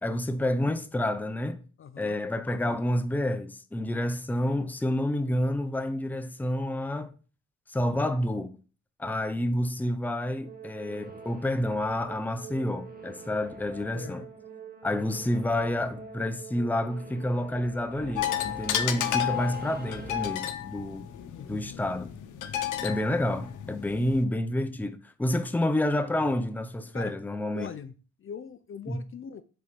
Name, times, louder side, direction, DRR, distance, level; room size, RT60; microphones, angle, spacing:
voice 1, 0.0-1.6 2.0-7.1 7.7-8.5 9.0-14.2 14.8-21.1 21.5-22.1 22.8-27.7 28.9-29.0, left 1 dB, 5° left, 0.7 m, -29 dB
voice 2, 1.8-2.2 7.9-8.0 13.9-14.3 19.0-19.4 21.3-21.8 24.0-24.2 25.3-25.5 26.9-27.1 27.5-29.4, left 7 dB, 45° left, 0.6 m, -42 dB
Singing / Musical instrument, 10.4-20.3, right 3 dB, 30° right, 2.0 m, -44 dB
sound 1, 18.2-24.2, left 11 dB, 80° left, 0.9 m, -32 dB
6.7 x 4.1 x 5.2 m
cardioid pair, 90°, 30 cm